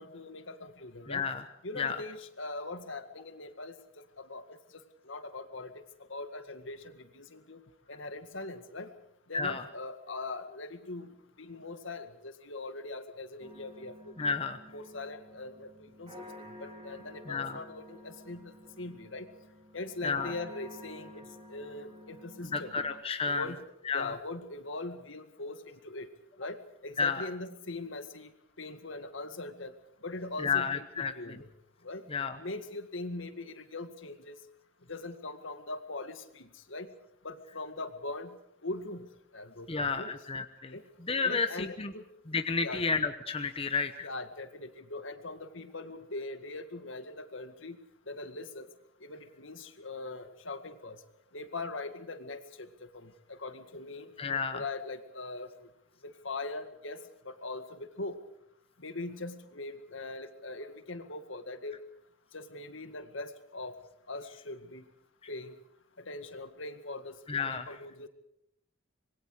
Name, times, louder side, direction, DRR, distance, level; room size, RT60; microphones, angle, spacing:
voice 1, 0.0-1.3 1.6-5.8 6.1-7.6 7.9-8.9 9.3-14.3 14.7-19.3 19.7-22.8 23.3-23.6 23.9-26.1 26.4-28.3 28.6-29.7 30.0-31.5 31.8-32.1 32.4-34.4 34.9-36.9 37.2-38.4 38.6-39.1 39.3-40.2 40.7-40.9 41.2-42.0 42.6-42.8 44.0-47.8 48.1-48.7 49.0-51.0 51.3-54.1 54.5-55.7 56.0-57.0 57.2-58.2 58.8-61.8 62.3-63.7 64.1-64.9 65.3-65.5 66.0-68.1, left 2 dB, 65° left, 9 dB, 1.9 m, -41 dB
voice 2, 1.1-1.4 1.8-2.0 9.3-9.6 14.2-14.6 17.3-17.6 20.0-20.3 22.5-23.5 23.9-24.1 27.0-27.2 30.4-31.1 32.1-32.4 39.7-40.7 41.1-41.9 42.3-44.1 54.2-54.6 67.3-67.7, left 5 dB, 30° left, 8 dB, 1.0 m, -31 dB
sound 1, 13.4-23.0, left 1 dB, 30° right, 4.1 m, -51 dB
26.0 x 22.0 x 4.9 m, 0.77 s
head